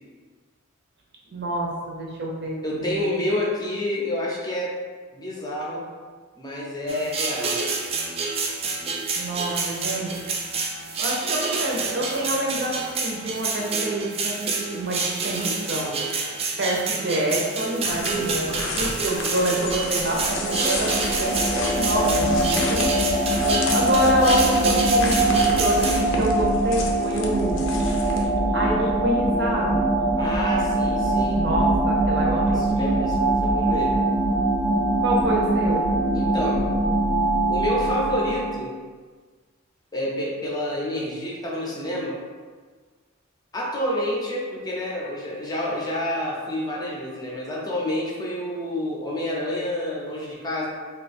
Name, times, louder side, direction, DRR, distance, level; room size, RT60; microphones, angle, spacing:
voice 1, 1.3-3.1 9.2-10.2 11.0-16.0 16.6-22.8 23.7-28.0 28.5-29.9 31.3-32.7 35.0-35.9, right 1 dB, 55° right, -2 dB, 0.7 m, -27 dB
voice 2, 2.6-4.7 5.1-5.9 6.4-7.6 18.1-18.7 30.2-31.4 32.5-34.0 36.1-36.7 37.5-38.7 39.9-42.2 43.5-50.7, left 1 dB, 20° left, -4 dB, 0.5 m, -28 dB
sound 1, 6.9-26.0, right 4 dB, 30° right, 0.3 m, -28 dB
sound 2, 17.8-28.2, left 3 dB, 70° left, 0.5 m, -33 dB
sound 3, 19.7-38.6, right 1 dB, 80° right, 0.9 m, -22 dB
2.7 x 2.3 x 4.2 m, 1.5 s
head